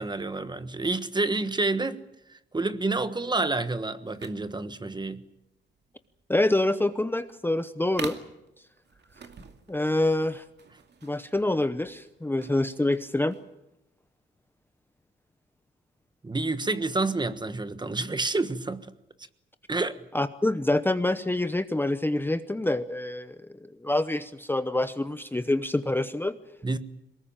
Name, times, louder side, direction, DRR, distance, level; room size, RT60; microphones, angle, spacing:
voice 1, 0.0-5.2 16.2-18.9 19.7-20.0 26.6-26.8, right 3 dB, 20° right, 1.3 m, -29 dB
sound 1, 4.1-13.5, right 5 dB, 55° right, 2.4 m, -46 dB
voice 2, 6.3-8.2 9.7-10.4 11.0-13.4 20.1-23.4 23.8-26.4, left 2 dB, 10° left, 0.9 m, -26 dB
23.0 x 19.5 x 8.9 m
cardioid pair, 100°, 20 cm